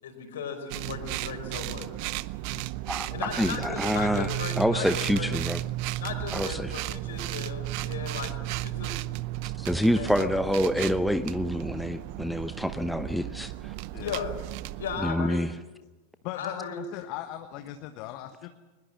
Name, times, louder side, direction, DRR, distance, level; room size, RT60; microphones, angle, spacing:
voice 1, 0.0-1.9 3.1-5.3 6.0-9.0 9.9-10.3 14.0-14.3 14.8-15.4 16.3-16.8, left 6 dB, 60° left, 6 dB, 5.2 m, -36 dB
sound 1, 0.7-15.1, right 17 dB, 45° right, 0.7 m, -34 dB
voice 2, 3.4-4.3 4.6-5.6 6.3-6.7 9.6-13.7 15.0-15.5, equal, ahead, 11 dB, 0.8 m, -27 dB
voice 3, 16.2-18.5, left 13 dB, 40° left, 8 dB, 1.2 m, -38 dB
22.5 x 20.5 x 7.7 m, 1.2 s
figure-of-eight pair, 90°, 0 cm